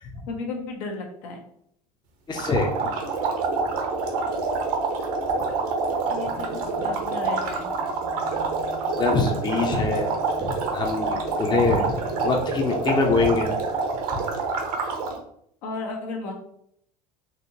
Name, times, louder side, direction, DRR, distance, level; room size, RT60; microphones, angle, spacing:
voice 1, 0.3-1.4 6.1-7.7 15.6-16.3, left 3 dB, 65° left, 1 dB, 1.0 m, -34 dB
voice 2, 2.3-2.7 9.0-10.1 10.4-12.0 12.2-13.5 14.1-14.2, left 3 dB, 20° left, 2 dB, 0.7 m, -24 dB
sound 1, 2.3-15.2, right 4 dB, 65° right, 0.9 m, -27 dB
sound 2, 6.0-13.8, left 1 dB, 35° left, 1.2 m, -42 dB
4.3 x 2.8 x 2.7 m, 0.70 s
hypercardioid pair, 75°, 21 cm